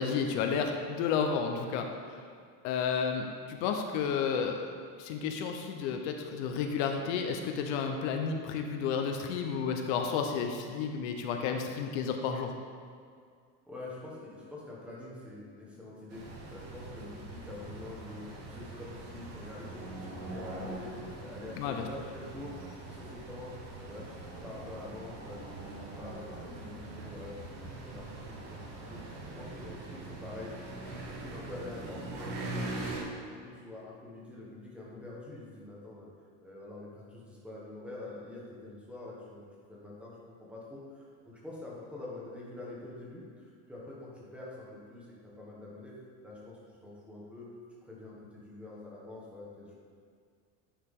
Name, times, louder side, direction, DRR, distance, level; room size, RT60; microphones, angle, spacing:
voice 1, 0.0-2.2 2.6-4.7 5.0-12.5 21.6-21.8, left 6 dB, 65° left, 4 dB, 0.7 m, -31 dB
voice 2, 13.7-16.2 16.5-22.5 22.8-30.5 30.8-36.1 36.4-39.4 39.7-47.5 47.8-49.7, left 2 dB, 5° right, -6 dB, 1.1 m, -46 dB
sound 1, 16.1-33.0, right 2 dB, 85° right, 1.8 m, -43 dB
9.9 x 4.8 x 3.6 m, 2.1 s
cardioid pair, 165°, 37 cm